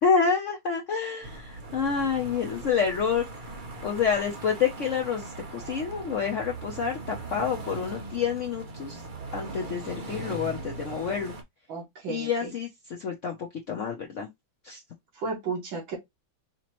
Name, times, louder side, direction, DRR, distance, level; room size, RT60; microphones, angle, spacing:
voice 1, 0.0-3.5 3.8-9.0 9.3-11.4 12.1-14.3 14.6-14.8, left 6 dB, 75° left, 0.7 m, -28 dB
sound 1, 1.2-11.4, right 3 dB, 50° right, 0.5 m, -40 dB
voice 2, 11.7-12.5 15.1-16.0, right 4 dB, 75° right, 2.4 m, -33 dB
5.0 x 3.0 x 2.9 m
omnidirectional pair, 2.2 m